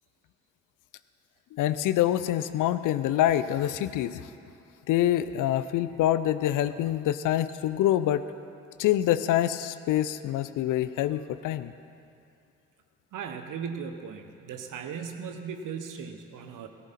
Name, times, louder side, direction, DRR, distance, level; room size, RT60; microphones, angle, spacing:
voice 1, 1.6-4.2 4.9-8.2 8.8-11.7, left 12 dB, 60° left, 13 dB, 0.7 m, -26 dB
voice 2, 13.1-16.7, right 6 dB, 60° right, 6 dB, 1.3 m, -37 dB
18.0 x 14.0 x 4.3 m, 2.6 s
hypercardioid pair, 40°, 35 cm